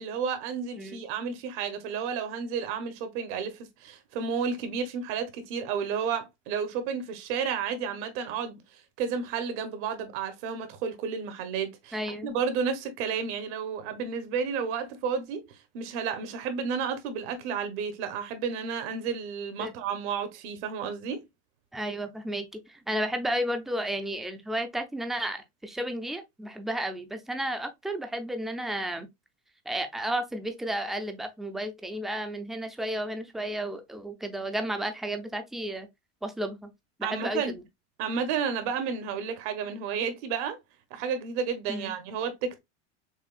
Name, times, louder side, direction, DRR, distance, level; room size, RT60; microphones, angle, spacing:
voice 1, 0.0-21.2 37.0-37.6 38.0-40.6 40.9-42.6, right 6 dB, 65° right, 1.2 m, -32 dB
voice 2, 11.9-12.3 19.6-19.7 21.7-29.1 29.7-35.9 36.2-36.7 37.0-37.4 41.7-41.9, right 1 dB, ahead, 0.4 m, -32 dB
6.2 x 2.4 x 2.4 m
supercardioid pair, 130°, 37 cm